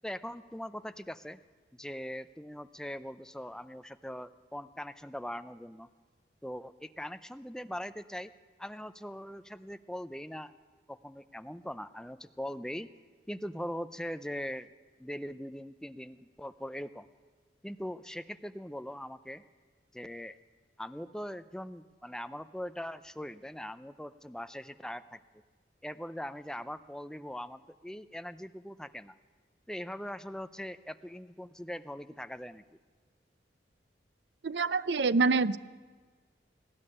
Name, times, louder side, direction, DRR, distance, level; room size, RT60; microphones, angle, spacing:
voice 1, 0.0-1.4 1.7-5.9 6.4-8.3 8.6-10.5 10.9-12.9 13.3-14.7 15.0-17.1 17.6-19.4 19.9-20.4 20.8-25.2 25.8-29.1 29.7-32.6, equal, 5° left, 11 dB, 0.5 m, -41 dB
voice 2, 34.4-35.6, right 4 dB, 70° right, 17 dB, 0.5 m, -26 dB
20.0 x 14.0 x 9.9 m, 1.5 s
head